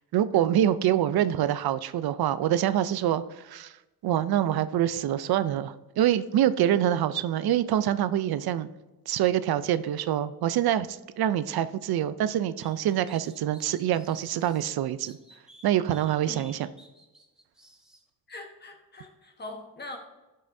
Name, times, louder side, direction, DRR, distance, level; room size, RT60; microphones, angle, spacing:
voice 1, 0.1-3.7 4.0-8.7 9.1-15.2 15.6-16.7, right 11 dB, 80° right, 14 dB, 0.5 m, -25 dB
sound 1, 12.6-14.6 15.0-18.0, right 1 dB, ahead, 1.0 m, -55 dB
voice 2, 18.3-20.0, left 2 dB, 25° left, 3 dB, 1.2 m, -42 dB
16.0 x 5.6 x 2.7 m, 1.1 s
wide cardioid pair, 180°, 37 cm